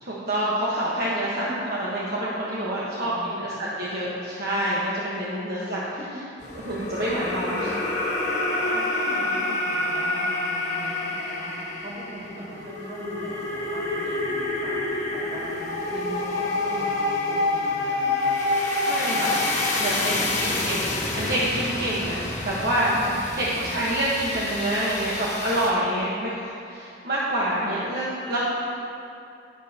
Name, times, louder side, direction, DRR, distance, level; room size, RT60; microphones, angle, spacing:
voice 1, 0.0-5.8 6.6-7.7 18.8-19.3 19.8-20.1 20.4-20.8 21.1-22.2 22.4-22.9 23.3-28.4, right 1 dB, 55° right, -7 dB, 1.3 m, -27 dB
voice 2, 1.3-1.7 3.0-3.7 5.5-6.2 8.5-18.4 19.1-19.3 19.8-21.3 23.0-23.1 23.5-23.9, right 1 dB, 40° right, -7 dB, 2.5 m, -40 dB
sound 1, 6.4-25.7, left 2 dB, 40° left, 1.5 m, -28 dB
12.0 x 11.0 x 2.9 m, 2.6 s
head